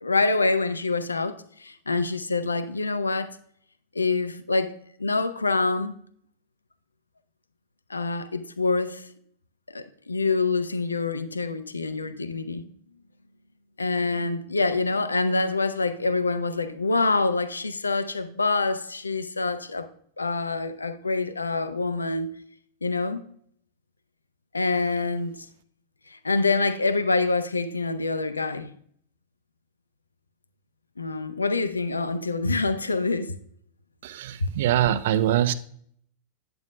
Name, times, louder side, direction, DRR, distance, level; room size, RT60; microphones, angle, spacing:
voice 1, 0.0-3.4 3.9-4.7 5.0-5.9 7.9-9.1 9.7-12.7 13.8-19.9 20.2-22.4 22.8-23.2 24.5-25.5 26.1-28.7 31.0-33.3 34.4-34.5, left 3 dB, 80° left, 0.5 m, -26 dB
voice 2, 34.0-35.5, right 11 dB, 55° right, 0.4 m, -23 dB
8.7 x 7.7 x 2.3 m
figure-of-eight pair, 90°, 0 cm